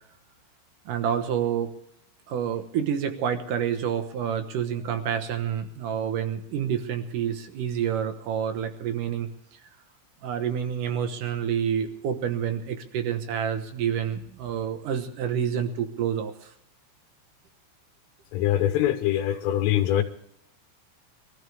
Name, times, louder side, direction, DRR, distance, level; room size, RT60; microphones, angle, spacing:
voice 1, 0.9-1.7 2.3-9.3 10.2-16.5, right 8 dB, 80° right, 7 dB, 1.8 m, -28 dB
voice 2, 18.3-20.0, left 12 dB, 85° left, 4 dB, 3.6 m, -23 dB
23.0 x 14.0 x 3.4 m, 0.72 s
omnidirectional pair, 5.7 m